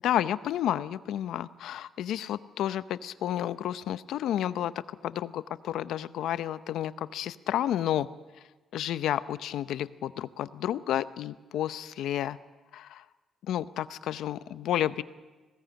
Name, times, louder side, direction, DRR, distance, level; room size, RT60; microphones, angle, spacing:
voice 1, 0.0-4.7 5.0-8.1 8.7-12.4 12.7-13.0 13.4-15.0, left 11 dB, 80° left, 14 dB, 0.7 m, -31 dB
20.0 x 17.0 x 9.0 m, 1.3 s
cardioid pair, 90°, 0 cm